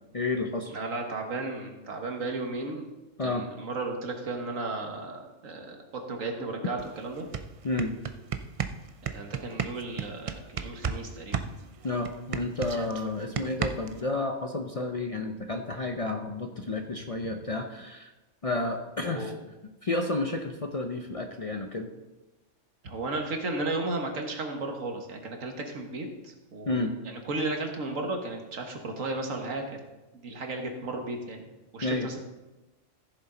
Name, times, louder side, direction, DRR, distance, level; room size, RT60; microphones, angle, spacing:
voice 1, 0.1-0.8 3.2-3.5 7.6-8.0 11.8-18.1 18.4-19.3 19.8-21.9 26.7-26.9 31.8-32.1, left 2 dB, 40° left, 4 dB, 0.5 m, -31 dB
voice 2, 0.7-2.9 3.2-5.8 6.1-7.3 9.0-11.4 19.0-19.4 22.8-29.8 30.1-32.2, right 2 dB, 85° right, 3 dB, 1.8 m, -34 dB
sound 1, 6.8-6.9 7.2-11.0 11.3-14.0, right 6 dB, 60° right, 0.3 m, -32 dB
15.0 x 7.0 x 3.9 m, 1.1 s
omnidirectional pair, 1.3 m